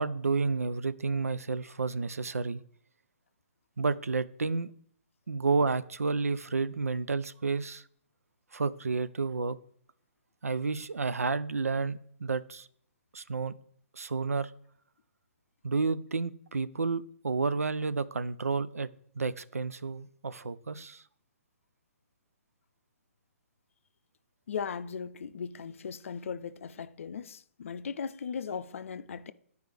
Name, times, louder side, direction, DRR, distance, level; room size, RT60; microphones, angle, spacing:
voice 1, 0.0-2.6 3.8-4.7 5.3-7.8 8.5-9.6 10.4-12.7 13.1-13.5 13.9-14.5 15.6-18.9 19.2-21.0, right 4 dB, 90° right, 0.4 m, -30 dB
voice 2, 24.5-29.3, left 6 dB, 65° left, 0.5 m, -38 dB
10.0 x 4.7 x 3.3 m
hypercardioid pair, 135°, 8 cm